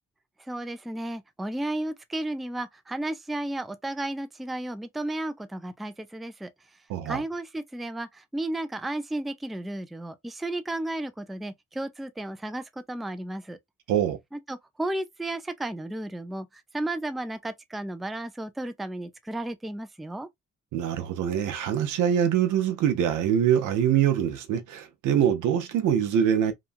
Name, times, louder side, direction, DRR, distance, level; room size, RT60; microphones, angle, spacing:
voice 1, 0.5-6.5 7.1-13.6 14.3-20.3, right 1 dB, ahead, 0.4 m, -33 dB
voice 2, 6.9-7.2 13.9-14.2 20.7-26.5, right 9 dB, 80° right, 0.7 m, -24 dB
3.0 x 2.3 x 2.5 m
cardioid pair, 90°, 30 cm